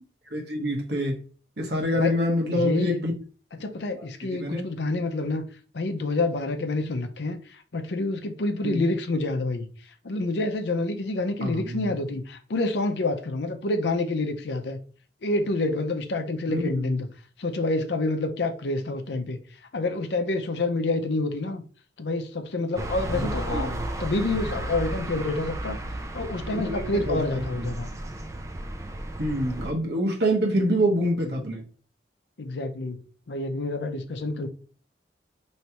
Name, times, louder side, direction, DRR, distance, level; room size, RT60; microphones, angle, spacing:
voice 1, 0.3-1.2 1.6-3.1 4.0-4.1 4.3-4.6 8.6-8.8 11.4-11.9 16.5-17.0 23.1-23.8 26.5-27.7 29.2-31.6, equal, 70° right, 1.1 m, -26 dB
voice 2, 2.5-3.0 3.6-5.4 5.7-7.4 7.7-9.7 10.0-14.8 15.2-17.1 17.4-19.4 19.7-21.6 22.0-23.7 24.0-25.8 26.1-27.9 32.4-33.0 33.3-34.5, left 2 dB, 80° left, 0.6 m, -28 dB
sound 1, 22.8-29.7, right 1 dB, 20° right, 0.4 m, -33 dB
4.5 x 3.2 x 2.9 m
head